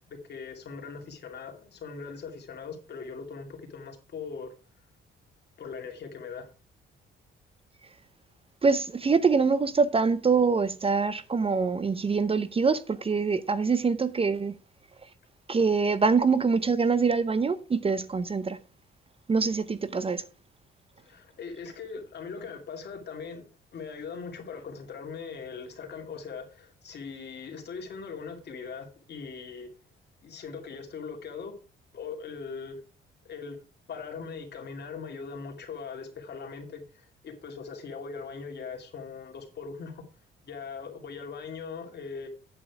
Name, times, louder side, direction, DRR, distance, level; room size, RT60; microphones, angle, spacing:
voice 1, 0.1-4.5 5.6-6.5 21.0-29.7 30.2-31.6 31.9-32.8 33.2-33.6 33.9-40.0 40.4-42.3, left 5 dB, 55° left, 2.6 m, -40 dB
voice 2, 8.6-14.5 15.5-18.6 19.3-20.2, right 5 dB, 30° right, 0.7 m, -24 dB
8.7 x 8.6 x 4.8 m
cardioid pair, 90°, 20 cm